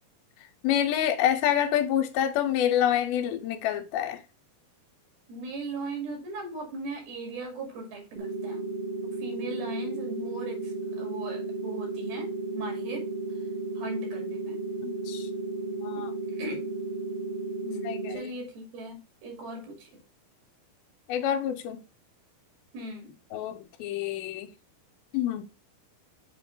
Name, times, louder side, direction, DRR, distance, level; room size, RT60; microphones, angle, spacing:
voice 1, 0.6-4.2 14.8-15.3 15.7-16.1 17.9-18.3 21.1-21.8 23.3-24.5 25.1-25.4, left 10 dB, 90° left, 2.5 m, -27 dB
voice 2, 5.3-8.7 9.0-13.1 13.8-14.6 16.0-16.7 17.6-20.0 22.7-23.2, right 2 dB, 75° right, 4.2 m, -39 dB
sound 1, 8.2-18.2, right 2 dB, 50° right, 2.1 m, -34 dB
7.7 x 3.0 x 5.2 m
omnidirectional pair, 4.4 m